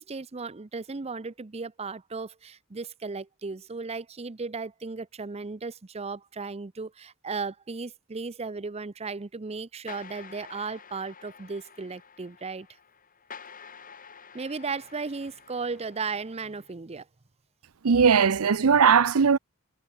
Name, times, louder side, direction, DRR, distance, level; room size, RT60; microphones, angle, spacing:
voice 1, 0.0-12.7 14.3-17.1, right 4 dB, 30° right, 0.6 m, -35 dB
sound 1, 9.9-16.7, left 6 dB, 40° left, 2.5 m, -49 dB
voice 2, 17.8-19.4, right 6 dB, 70° right, 0.6 m, -19 dB
head